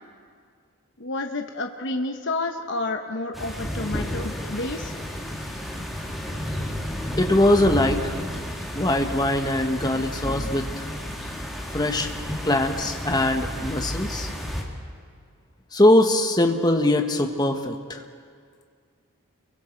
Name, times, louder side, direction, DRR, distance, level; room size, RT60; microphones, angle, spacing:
voice 1, 1.0-5.0, left 2 dB, 55° left, 4 dB, 1.0 m, -30 dB
sound 1, 3.3-14.6, equal, ahead, 2.4 m, -32 dB
voice 2, 7.2-8.1 8.7-10.9 11.7-12.1 12.4-14.3 15.7-18.0, left 1 dB, 20° left, 4 dB, 1.4 m, -21 dB
30.0 x 23.5 x 4.6 m, 2.1 s
head